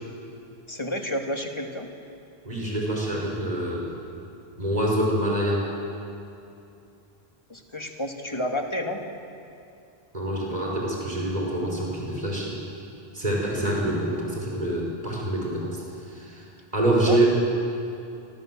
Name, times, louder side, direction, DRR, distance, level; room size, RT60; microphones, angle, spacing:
voice 1, 0.7-1.9 7.5-9.0 17.1-17.3, left 1 dB, 25° left, 2 dB, 2.6 m, -30 dB
voice 2, 2.4-3.9 4.6-5.7 10.1-12.6 13.1-16.4 16.7-17.3, right 1 dB, 40° right, -2 dB, 5.7 m, -26 dB
29.0 x 25.0 x 7.8 m, 2.6 s
omnidirectional pair, 1.1 m